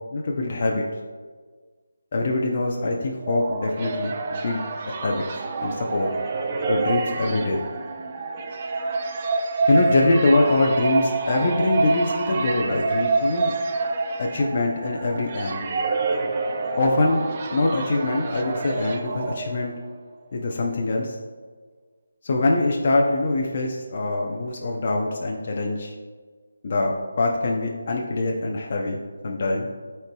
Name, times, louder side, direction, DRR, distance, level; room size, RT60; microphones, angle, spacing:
voice 1, 0.1-0.8 2.1-5.2 5.6-6.1 6.7-7.6 9.7-13.5 14.2-15.7 16.8-17.2 17.5-19.7 20.3-21.2 22.2-25.9 26.6-29.7, left 2 dB, 45° left, -1 dB, 0.7 m, -24 dB
sound 1, 3.0-19.9, right 3 dB, 30° right, 0.5 m, -27 dB
11.5 x 4.5 x 2.3 m, 1.5 s
figure-of-eight pair, 165°, 0 cm